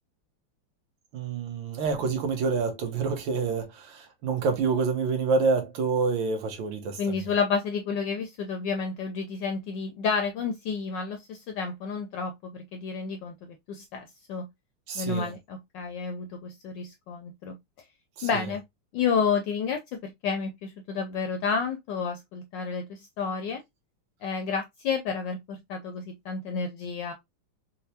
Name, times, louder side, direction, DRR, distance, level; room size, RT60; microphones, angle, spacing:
voice 1, 1.1-7.2 14.9-15.3 18.2-18.4, right 4 dB, 70° right, 1.4 m, -27 dB
voice 2, 7.0-14.5 14.9-17.6 18.2-18.6 18.9-23.6 24.2-27.1, left 5 dB, 75° left, 1.0 m, -30 dB
4.3 x 2.1 x 2.7 m
omnidirectional pair, 2.4 m